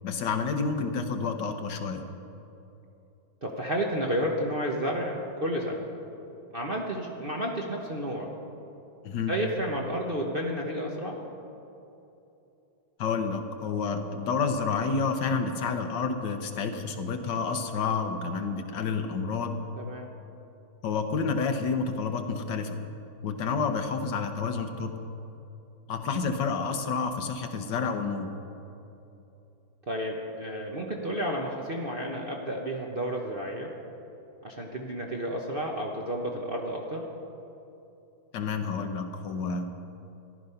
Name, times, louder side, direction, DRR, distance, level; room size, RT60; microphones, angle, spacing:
voice 1, 0.0-2.0 9.0-9.3 13.0-19.6 20.8-22.8 23.2-24.9 25.9-28.3 38.3-39.9, left 5 dB, 65° left, 6 dB, 1.4 m, -29 dB
voice 2, 3.4-5.9 6.5-8.3 9.3-11.2 19.8-20.1 29.9-33.7 34.4-37.0, equal, 40° right, -1 dB, 0.9 m, -31 dB
14.5 x 11.5 x 5.6 m, 2.9 s
omnidirectional pair, 2.1 m